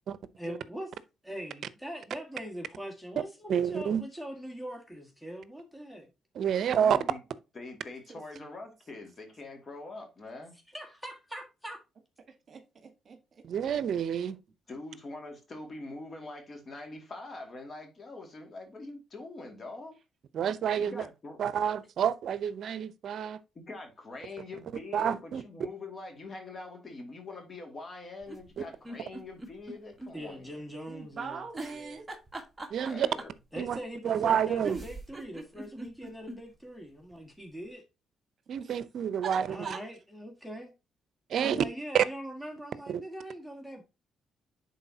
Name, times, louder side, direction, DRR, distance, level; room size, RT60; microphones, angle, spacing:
voice 1, 0.4-0.9 1.2-6.1 10.7-11.8 30.1-31.4 31.7-32.0 33.5-37.8 39.5-40.7 41.4-43.8, equal, 5° left, 1.8 m, -42 dB
voice 2, 3.5-4.0 6.4-7.0 13.4-14.4 20.3-21.0 21.4-23.4 24.9-25.4 28.6-28.7 32.7-33.1 33.6-33.8 34.0-34.8 38.5-39.5 41.3-41.6 41.9-42.0 42.9-43.0, right 8 dB, 65° right, 0.6 m, -28 dB
voice 3, 6.7-7.2 7.5-10.6 14.7-20.0 20.8-21.4 23.5-30.5 32.8-33.3, left 2 dB, 40° left, 2.2 m, -44 dB
voice 4, 12.3-13.4 30.9-32.1 38.6-38.8 39.2-39.8, right 6 dB, 50° right, 1.4 m, -42 dB
sound 1, 28.2-30.1 30.5-30.6 31.5-33.4 34.3-34.4 34.6-36.4 36.8-36.9 37.1-37.2, right 2 dB, 15° right, 1.4 m, -41 dB
10.5 x 4.2 x 2.8 m
cardioid pair, 90°, 0 cm